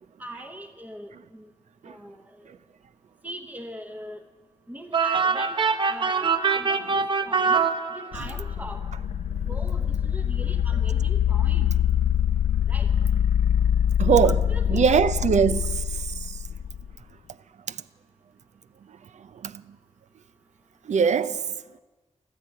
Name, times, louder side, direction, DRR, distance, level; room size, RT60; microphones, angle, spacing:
voice 1, 0.2-1.5 1.9-2.5 3.2-4.2 4.7-7.6 7.9-8.8 9.5-11.7 12.7-12.9 14.2-14.9, right 1 dB, 15° right, 1.1 m, -41 dB
sound 1, 4.9-8.4, right 5 dB, 40° right, 0.9 m, -24 dB
sound 2, 8.1-16.9, left 9 dB, 80° left, 0.4 m, -24 dB
voice 2, 14.0-14.4 14.7-16.0 16.3-16.4 19.4-19.6 20.9-21.4, right 7 dB, 75° right, 0.5 m, -21 dB
14.0 x 12.0 x 8.6 m
cardioid pair, 75°, 12 cm